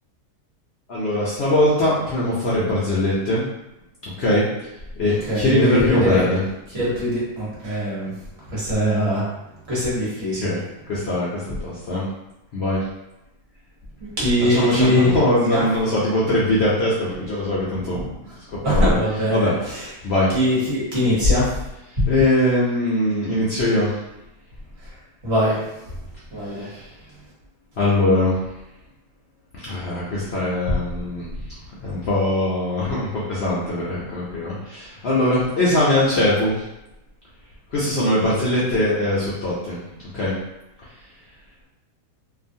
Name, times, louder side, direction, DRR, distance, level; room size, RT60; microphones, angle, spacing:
voice 1, 0.9-3.4 4.2-4.5 5.0-6.4 10.4-10.6 10.9-12.0 12.5-12.8 14.5-18.1 18.5-19.0 19.3-19.5 20.0-20.3 22.1-23.9 26.7-26.8 27.8-28.4 29.7-31.3 31.8-36.6 37.7-39.8 40.1-40.3, left 1 dB, 75° left, -7 dB, 0.6 m, -21 dB
voice 2, 5.1-6.2 6.7-8.1 8.5-9.3 9.7-10.6 14.2-15.1 15.5-15.7 18.6-19.9 20.3-21.5 22.0-22.1 25.2-25.6 26.3-26.7 30.7-30.8, equal, 45° right, -7 dB, 1.2 m, -21 dB
2.8 x 2.4 x 2.6 m, 0.93 s
omnidirectional pair, 1.7 m